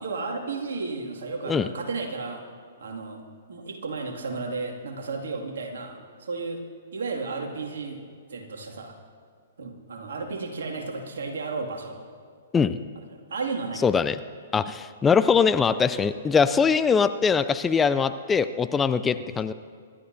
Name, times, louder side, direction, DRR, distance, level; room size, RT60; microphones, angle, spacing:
voice 1, 0.0-2.4 2.8-3.2 3.5-6.6 6.9-8.0 8.3-8.9 9.6-12.0 13.0-13.8 19.0-19.2, right 4 dB, 70° right, 1 dB, 2.2 m, -33 dB
voice 2, 13.8-14.2 14.5-19.5, left 6 dB, 15° left, 12 dB, 0.4 m, -22 dB
25.5 x 12.5 x 2.7 m, 2.1 s
figure-of-eight pair, 120°, 0 cm